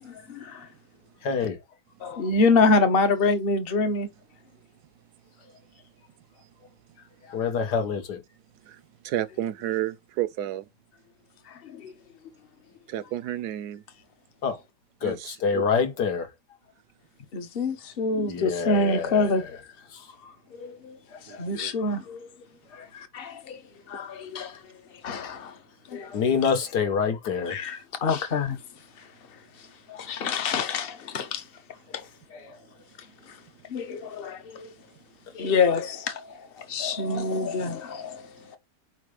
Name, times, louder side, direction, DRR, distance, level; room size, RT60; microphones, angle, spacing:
voice 1, 0.0-0.7 2.0-4.1 11.5-11.9 17.3-19.4 20.5-22.3 22.9-25.6 25.9-26.2 27.5-31.5 31.9-32.1 33.0-33.4 33.7-34.7 35.3-38.6, left 3 dB, 40° left, 1.0 m, -27 dB
voice 2, 1.2-1.6 7.2-8.2 14.4-14.6 15.0-16.3 18.3-19.5 19.9-20.3 21.1-21.5 22.7-22.9 26.0-27.6 32.3-32.6, left 6 dB, 70° left, 1.8 m, -27 dB
voice 3, 9.0-10.6 12.9-13.8 15.0-15.6 21.3-21.7, right 13 dB, 70° right, 1.1 m, -31 dB
4.8 x 4.1 x 4.8 m
omnidirectional pair, 1.9 m